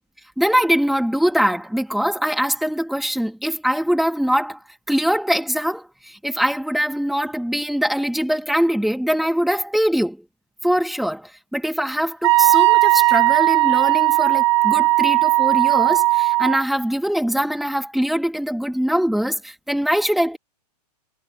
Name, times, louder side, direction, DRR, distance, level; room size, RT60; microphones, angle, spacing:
voice 1, 0.4-4.6 4.9-10.2 10.6-20.4, equal, ahead, 2.6 m, -22 dB
Wind instrument woodwind instrument, 12.2-16.6, right 19 dB, 45° right, 0.9 m, -17 dB
hypercardioid pair, 160°, 21 cm